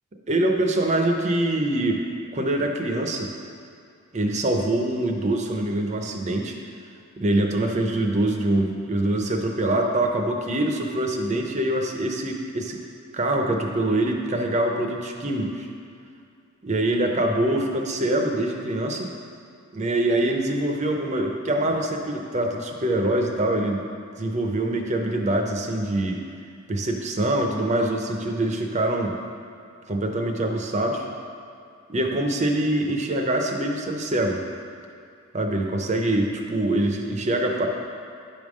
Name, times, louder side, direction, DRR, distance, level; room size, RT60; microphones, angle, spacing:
voice 1, 0.3-2.0 2.3-3.3 4.1-6.6 7.2-12.8 13.1-15.7 16.6-19.1 19.7-23.8 24.2-26.2 26.7-29.2 29.9-31.1 31.9-34.4 35.3-37.7, right 1 dB, 35° right, 3 dB, 0.6 m, -24 dB
10.0 x 3.6 x 6.3 m, 2.4 s
head